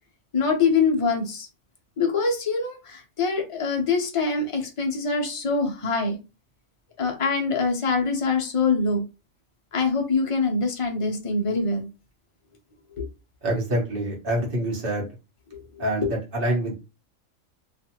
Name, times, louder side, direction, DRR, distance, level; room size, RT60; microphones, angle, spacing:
voice 1, 0.3-1.5 2.0-6.2 7.0-9.0 9.7-11.9 13.0-13.1 15.5-16.1, left 4 dB, 50° left, 2 dB, 0.4 m, -24 dB
voice 2, 13.4-15.1 15.8-16.1 16.3-16.7, right 1 dB, 50° right, -2 dB, 1.0 m, -26 dB
2.4 x 2.4 x 2.8 m, 0.29 s
omnidirectional pair, 1.3 m